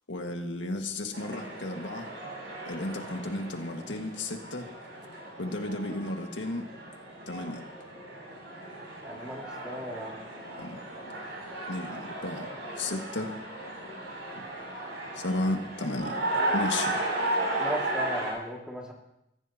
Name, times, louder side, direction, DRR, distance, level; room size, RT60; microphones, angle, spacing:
voice 1, 0.1-2.1 2.7-4.7 5.4-6.7 7.3-7.6 10.6-10.8 11.7-13.3 14.3-14.5 15.1-17.0, left 2 dB, 85° left, 3 dB, 1.9 m, -34 dB
sound 1, 1.1-18.3, right 1 dB, 75° right, 7.5 m, -35 dB
voice 2, 9.0-10.2 17.6-18.9, equal, 5° right, -1 dB, 2.2 m, -37 dB
23.0 x 15.0 x 2.9 m, 0.85 s
head